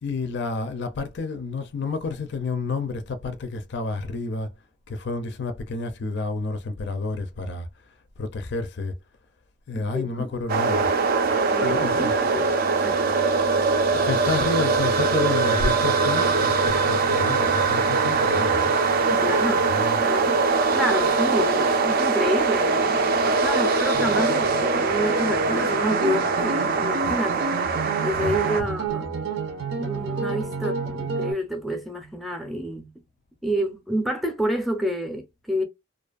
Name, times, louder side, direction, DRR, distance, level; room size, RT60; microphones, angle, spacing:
voice 1, 0.0-4.5 4.9-7.7 8.2-9.0 9.7-10.9 11.6-12.1 13.9-18.7 19.6-20.0 28.2-28.7, left 3 dB, 60° left, 0.4 m, -30 dB
voice 2, 9.7-10.3 11.5-13.1 19.1-19.7 20.0-20.4 20.7-27.6 28.0-29.4 29.8-32.9 33.4-35.6, equal, ahead, 0.6 m, -29 dB
sound 1, 10.5-28.6, right 4 dB, 50° right, 0.4 m, -22 dB
sound 2, 23.9-31.3, right 4 dB, 85° right, 0.7 m, -30 dB
2.5 x 2.4 x 2.4 m
head